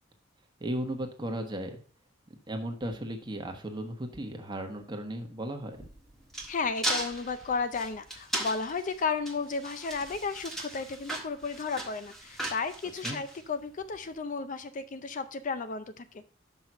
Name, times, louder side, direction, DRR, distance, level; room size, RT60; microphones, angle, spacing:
voice 1, 0.6-1.8 2.3-5.8 13.0-13.2, right 1 dB, 25° right, 3 dB, 1.2 m, -36 dB
sound 1, 5.7-14.0, right 1 dB, ahead, 1.4 m, -37 dB
voice 2, 6.5-16.2, left 4 dB, 40° left, 11 dB, 0.5 m, -33 dB
6.1 x 5.6 x 5.3 m, 0.42 s
head